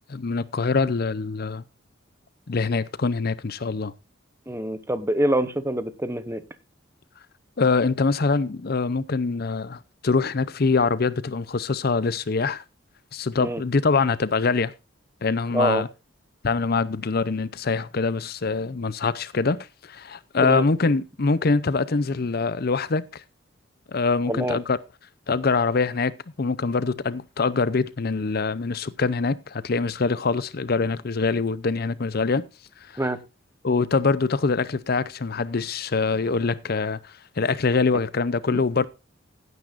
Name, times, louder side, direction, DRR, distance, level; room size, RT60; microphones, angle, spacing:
voice 1, 0.1-1.6 2.5-3.9 7.6-12.6 13.1-14.7 15.2-15.9 16.4-23.2 23.9-24.8 25.3-32.4 32.8-33.0 33.6-38.8, left 4 dB, 50° left, 0.6 m, -24 dB
voice 2, 4.5-6.4 13.4-13.6 15.5-15.8 20.4-20.7 24.3-24.6 33.0-33.2 38.5-38.6, right 1 dB, 15° right, 1.0 m, -25 dB
16.5 x 9.6 x 2.5 m
head